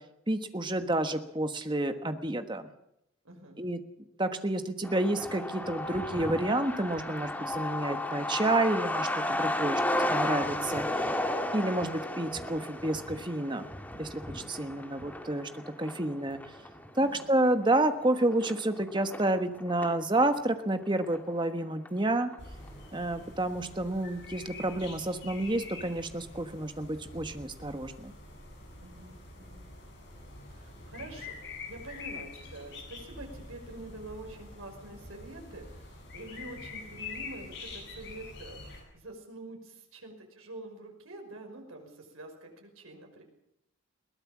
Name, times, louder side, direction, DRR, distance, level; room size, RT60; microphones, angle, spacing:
voice 1, 0.3-2.7 3.6-3.8 4.2-11.1 11.5-13.7 14.0-16.4 16.9-22.3 22.9-28.1, right 1 dB, 20° right, 8 dB, 1.3 m, -30 dB
voice 2, 3.2-3.6 17.0-17.3 28.8-29.6 30.5-35.9 36.1-43.2, right 2 dB, 85° right, 3 dB, 5.6 m, -46 dB
Truck, 4.8-20.0 20.3-20.4 20.7-21.6 21.9-22.0 22.3-22.7, left 1 dB, 10° left, 1.7 m, -34 dB
sound 1, 22.4-38.8, left 3 dB, 55° left, 7.7 m, -46 dB
21.5 x 17.5 x 7.3 m, 0.80 s
head